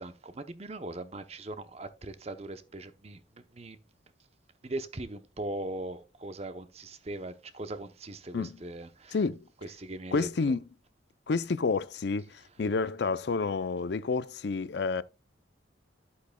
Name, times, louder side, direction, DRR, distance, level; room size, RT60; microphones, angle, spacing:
voice 1, 0.0-3.2 3.6-3.8 4.6-9.1 9.8-10.5, right 2 dB, 30° right, 0.7 m, -40 dB
voice 2, 9.1-9.5 10.1-10.7 11.3-15.0, left 4 dB, 60° left, 0.4 m, -29 dB
10.5 x 8.4 x 2.2 m
head